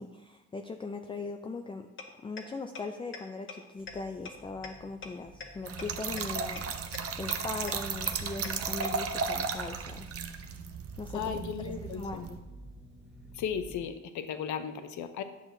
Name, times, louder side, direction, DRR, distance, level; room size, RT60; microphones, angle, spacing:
voice 1, 0.0-1.9 2.2-10.1 11.0-11.2 11.6-12.4, left 3 dB, 15° left, 5 dB, 0.4 m, -40 dB
sound 1, 2.0-2.1 2.4-2.5 2.8-2.9 3.1-3.2 3.5-3.6 3.9-4.0 4.3-4.4 4.6-4.7 5.0-5.1 5.4-5.5 5.8-5.9 6.2-6.3 6.6-6.7 6.9-7.0 7.3-7.4 7.7-7.8 8.1-8.2 8.4-8.5 8.8-8.9, left 5 dB, 40° left, 1.1 m, -40 dB
sound 2, 3.7-13.8, right 1 dB, 5° right, 1.2 m, -53 dB
Trickle dribble / Fill (with liquid), 5.6-12.4, right 5 dB, 50° right, 0.7 m, -35 dB
voice 2, 11.1-12.3 13.3-15.2, left 8 dB, 75° left, 10 dB, 0.7 m, -35 dB
9.7 x 6.2 x 2.6 m, 1.1 s
cardioid pair, 90°, 30 cm